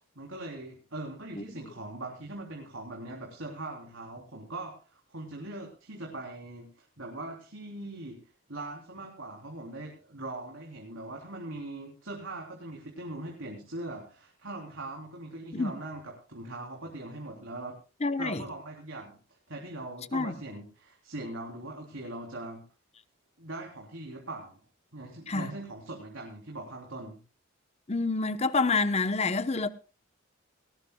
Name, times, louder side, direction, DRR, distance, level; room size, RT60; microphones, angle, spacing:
voice 1, 0.2-8.2 8.5-17.8 18.2-22.6 23.4-24.6 24.9-27.2, right 2 dB, 65° right, 3.4 m, -41 dB
voice 2, 18.0-18.4 20.1-20.3 25.3-25.5 27.9-29.7, left 3 dB, 30° left, 0.8 m, -27 dB
19.0 x 18.5 x 2.3 m
head